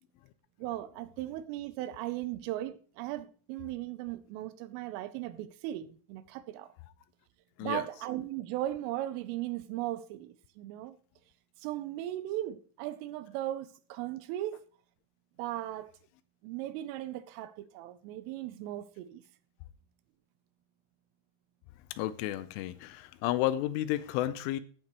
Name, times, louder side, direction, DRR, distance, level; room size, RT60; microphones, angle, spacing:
voice 1, 0.6-6.7 7.6-11.0 11.6-14.6 15.4-15.9 16.4-19.2, right 14 dB, 85° right, 3.2 m, -37 dB
voice 2, 21.9-24.6, left 14 dB, 85° left, 3.0 m, -32 dB
15.0 x 9.0 x 3.1 m
omnidirectional pair, 5.9 m